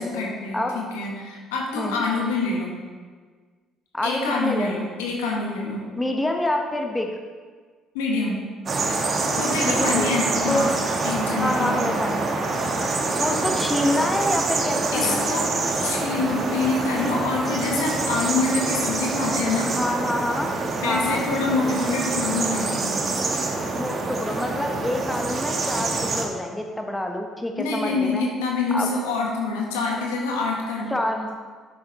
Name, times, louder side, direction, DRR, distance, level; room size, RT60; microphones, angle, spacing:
voice 1, 0.0-2.8 4.0-5.8 7.9-8.4 9.4-10.7 11.0-12.0 14.9-15.5 15.8-19.7 20.8-23.0 27.6-31.0, left 3 dB, 90° left, -1 dB, 1.5 m, -26 dB
voice 2, 3.9-4.8 6.0-7.2 9.6-10.1 10.5-10.8 11.4-12.3 13.2-15.3 19.6-20.5 20.8-21.3 23.7-28.2 28.7-28.9 30.9-31.3, left 1 dB, 10° left, 3 dB, 1.1 m, -26 dB
sound 1, 8.7-26.3, right 3 dB, 45° right, 1.3 m, -26 dB
8.2 x 6.6 x 4.2 m, 1.5 s
hypercardioid pair, 65°, 0 cm